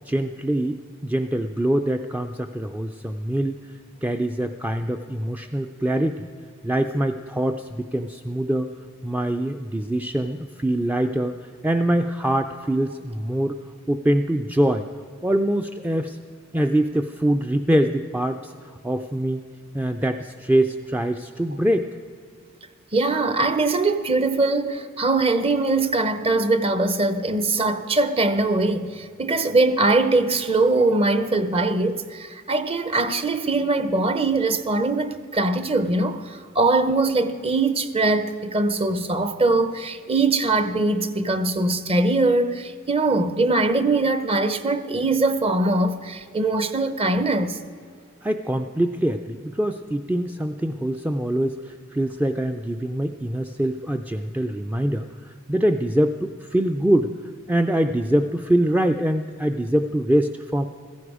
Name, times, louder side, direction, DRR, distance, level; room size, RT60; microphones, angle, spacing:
voice 1, 0.1-3.6 4.0-6.2 6.6-8.7 9.0-13.6 13.9-14.9 15.2-16.2 16.5-19.4 19.7-21.9 48.2-57.1 57.5-60.7, right 1 dB, 10° right, 0.4 m, -24 dB
voice 2, 22.9-47.6, right 2 dB, 30° right, 0.7 m, -22 dB
16.0 x 14.5 x 4.9 m
head